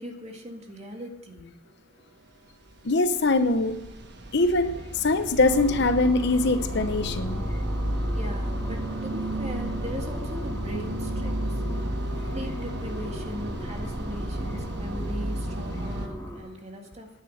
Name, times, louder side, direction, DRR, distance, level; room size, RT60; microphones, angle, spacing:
voice 1, 0.0-1.6 8.1-11.6 12.3-17.1, equal, 35° right, 3 dB, 1.9 m, -39 dB
voice 2, 2.8-3.7 4.3-7.4, left 2 dB, 65° left, 10 dB, 0.9 m, -23 dB
sound 1, 2.9-16.1, right 1 dB, 60° right, 1.4 m, -32 dB
sound 2, 5.4-16.4, equal, 10° left, 5.5 m, -41 dB
10.5 x 9.6 x 6.5 m, 1.0 s
head